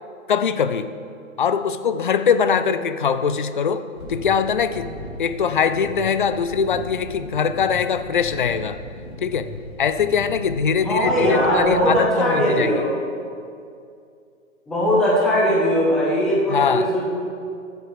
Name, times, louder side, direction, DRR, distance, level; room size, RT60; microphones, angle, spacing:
voice 1, 0.3-0.9 1.4-4.9 5.2-8.8 9.2-9.5 9.8-12.8 16.5-16.9, left 6 dB, 40° left, 12 dB, 0.4 m, -22 dB
sound 1, 3.9-11.9, left 1 dB, 80° left, 3.3 m, -37 dB
voice 2, 10.8-13.0 14.7-17.0, equal, ahead, -6 dB, 0.7 m, -19 dB
15.5 x 8.0 x 4.8 m, 2.4 s
hypercardioid pair, 160°, 42 cm